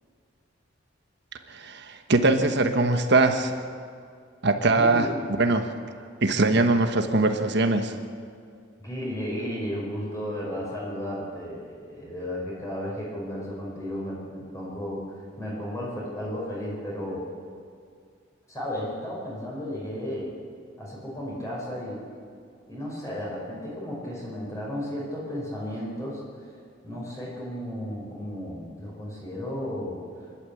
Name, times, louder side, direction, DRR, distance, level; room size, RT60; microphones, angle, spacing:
voice 1, 1.5-3.5 4.4-5.0 5.4-5.7 6.2-7.9, right 2 dB, 60° right, 7 dB, 1.4 m, -22 dB
voice 2, 4.8-5.1 8.8-17.3 18.5-20.3 20.8-22.1 22.7-26.5 26.8-30.0, equal, 15° left, -5 dB, 5.2 m, -34 dB
27.0 x 12.0 x 8.6 m, 2.3 s
head